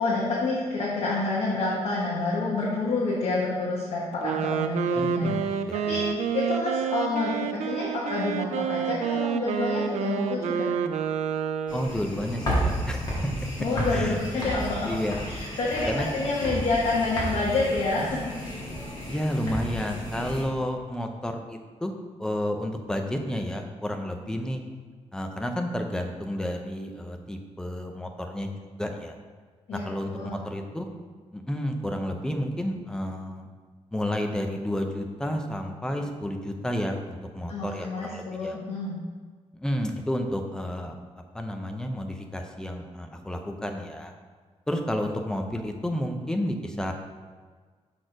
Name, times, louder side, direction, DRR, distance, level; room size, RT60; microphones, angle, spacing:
voice 1, 0.0-5.6 5.9-10.7 13.6-18.3 29.7-30.4 37.5-39.0, left 3 dB, 65° left, -5 dB, 1.2 m, -28 dB
Wind instrument woodwind instrument, 4.1-12.0, right 7 dB, 90° right, 0.4 m, -29 dB
voice 2, 4.9-6.0 11.7-13.1 13.9-14.2 14.8-15.2 15.9-16.1 19.1-21.9 22.2-24.6 25.1-28.5 28.8-29.1 29.7-30.9 31.3-33.5 33.9-38.6 39.5-40.9 41.3-44.1 44.7-46.9, equal, 5° left, 3 dB, 0.5 m, -31 dB
sound 1, 11.7-20.4, equal, 40° left, 1.7 m, -32 dB
6.2 x 4.2 x 5.0 m, 1.5 s
wide cardioid pair, 170°, 11 cm